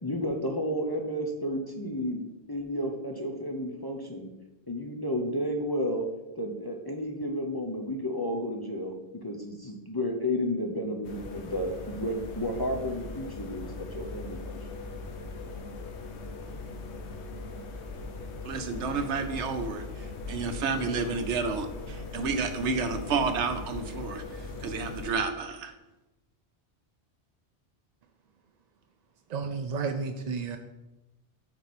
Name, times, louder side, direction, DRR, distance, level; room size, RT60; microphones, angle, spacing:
voice 1, 0.0-4.3 4.7-6.1 6.4-14.6, equal, 25° left, 0.6 m, -32 dB
sound 1, 11.0-25.1, left 3 dB, 80° left, 1.1 m, -40 dB
voice 2, 18.4-25.7, right 4 dB, 85° right, 1.1 m, -31 dB
voice 3, 29.3-30.6, right 5 dB, 60° right, 0.4 m, -32 dB
8.0 x 4.7 x 4.2 m
omnidirectional pair, 1.1 m